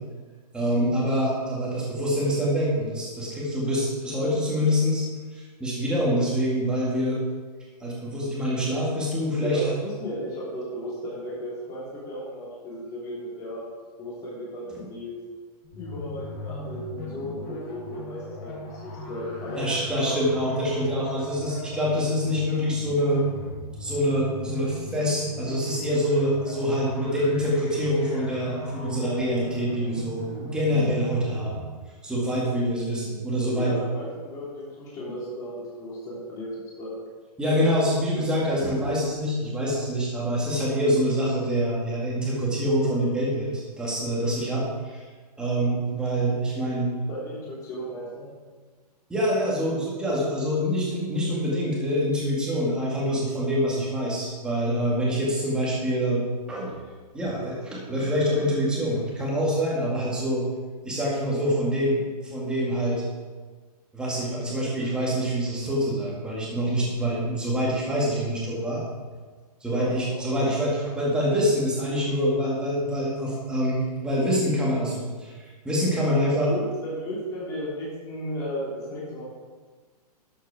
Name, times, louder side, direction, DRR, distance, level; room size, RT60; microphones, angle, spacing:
voice 1, 0.5-5.0 5.3-7.2 7.8-9.7 14.8-14.9 19.6-23.2 23.8-31.6 32.0-33.7 37.4-45.0 45.4-46.9 49.1-56.8 57.1-60.4 60.8-63.0 63.9-68.8 69.6-76.5, equal, 5° right, -5 dB, 2.0 m, -25 dB
voice 2, 9.4-13.6 14.0-15.1 15.7-20.1 33.5-36.9 47.1-48.3 69.7-70.2 76.3-79.2, equal, 15° left, -7 dB, 3.3 m, -35 dB
sound 1, 15.6-31.6, left 1 dB, 35° left, 3.3 m, -38 dB
11.5 x 8.3 x 4.8 m, 1.4 s
hypercardioid pair, 170°, 20 cm